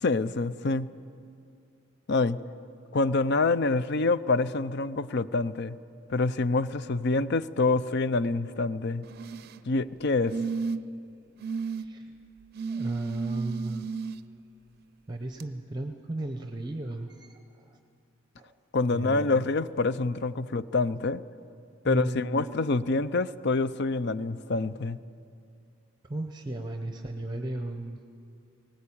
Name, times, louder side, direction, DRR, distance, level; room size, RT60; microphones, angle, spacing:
voice 1, 0.0-0.9 2.1-2.4 2.9-5.8 6.1-9.0 9.7-10.4 18.7-21.2 21.8-25.0, left 3 dB, 55° left, 15 dB, 0.5 m, -26 dB
sound 1, 9.0-9.6 10.3-11.0 11.4-11.8 12.6-14.2 15.4-15.5, right 5 dB, 50° right, 0.5 m, -33 dB
voice 2, 11.8-12.1 12.7-13.9 15.1-17.8 18.4-18.5 18.9-19.4 21.8-22.7 26.1-28.0, right 2 dB, 20° right, 5 dB, 0.8 m, -35 dB
19.5 x 18.5 x 8.6 m, 2.5 s
head